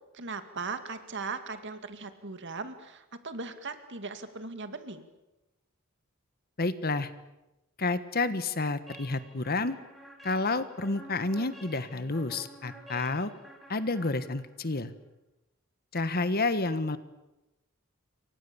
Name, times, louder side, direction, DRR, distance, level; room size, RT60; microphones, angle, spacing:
voice 1, 0.1-5.1, right 4 dB, 55° right, 9 dB, 2.3 m, -38 dB
voice 2, 6.6-7.1 7.8-9.8 10.2-13.3 13.7-14.9 15.9-17.0, left 3 dB, 45° left, 12 dB, 1.4 m, -30 dB
sound 1, 8.9-14.7, right 1 dB, ahead, 4.7 m, -50 dB
28.5 x 24.5 x 7.1 m, 0.97 s
head